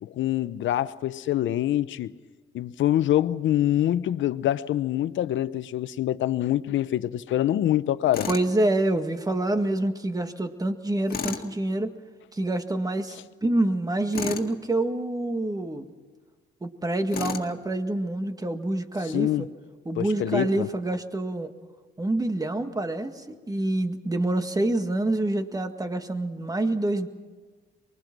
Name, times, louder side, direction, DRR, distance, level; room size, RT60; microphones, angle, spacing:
voice 1, 0.0-2.1 2.5-8.3 19.1-19.5 20.0-20.7, left 12 dB, 70° left, 0.8 m, -25 dB
Tools, 8.1-8.5 11.1-11.5 14.1-14.5 17.1-17.5, left 6 dB, 50° left, 2.1 m, -32 dB
voice 2, 8.3-11.9 12.3-15.9 16.6-19.5 19.9-21.5 22.0-27.1, right 1 dB, 20° right, 1.9 m, -27 dB
24.0 x 22.0 x 6.1 m
cardioid pair, 90°, 20 cm